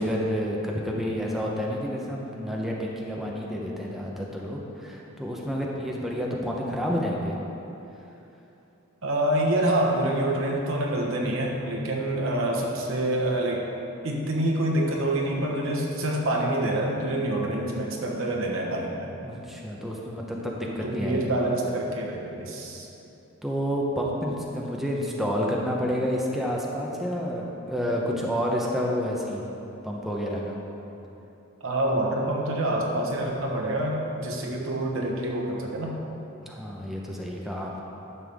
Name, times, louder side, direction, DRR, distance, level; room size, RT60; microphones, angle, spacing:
voice 1, 0.0-7.4 19.2-21.3 23.4-29.5 29.8-30.6 36.4-37.8, equal, ahead, -3 dB, 0.8 m, -29 dB
voice 2, 9.0-13.7 14.0-19.1 20.8-22.9 31.6-36.0, right 1 dB, 70° right, -1 dB, 1.2 m, -26 dB
11.0 x 6.9 x 3.5 m, 3.0 s
head